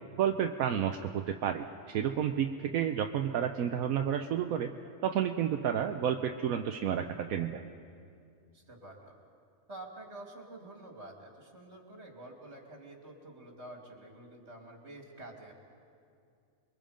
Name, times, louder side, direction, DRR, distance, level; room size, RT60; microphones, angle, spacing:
voice 1, 0.2-4.7 5.0-7.6, right 9 dB, 80° right, 5 dB, 1.2 m, -31 dB
voice 2, 8.5-9.1 9.7-15.5, right 1 dB, 50° right, 1 dB, 3.1 m, -48 dB
28.5 x 22.5 x 5.1 m, 2.4 s
omnidirectional pair, 1.5 m